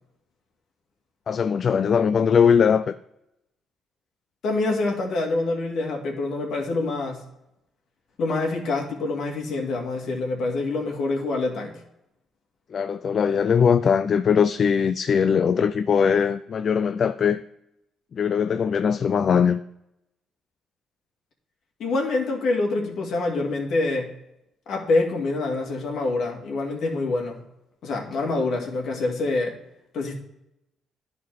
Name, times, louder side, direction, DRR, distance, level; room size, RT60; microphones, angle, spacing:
voice 1, 1.3-2.9 12.7-17.4 18.1-19.6, left 7 dB, 50° left, 0.3 m, -20 dB
voice 2, 4.4-7.2 8.2-11.8 21.8-24.1 24.7-27.4 27.8-29.6 29.9-30.2, left 3 dB, 70° left, 2.0 m, -26 dB
11.0 x 4.2 x 4.6 m
cardioid pair, 90°, 0 cm